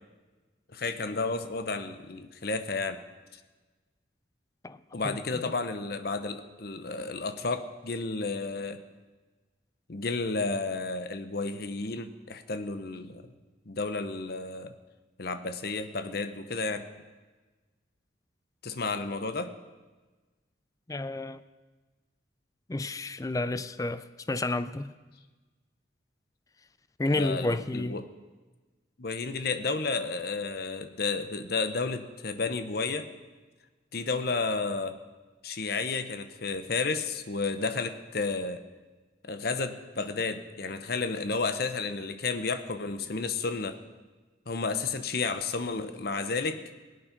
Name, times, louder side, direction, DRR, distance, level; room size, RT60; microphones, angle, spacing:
voice 1, 0.7-3.0 3.3-3.4 4.9-8.8 9.9-13.3 13.7-14.7 15.2-16.9 18.6-19.5 27.1-28.1 29.0-33.1 33.9-35.0 35.4-38.6 39.2-43.8 44.5-46.6, left 4 dB, 55° left, 0.9 m, -32 dB
voice 2, 20.9-21.4 22.7-24.9 27.0-28.0, left 2 dB, 20° left, 0.4 m, -30 dB
19.5 x 8.6 x 5.9 m
head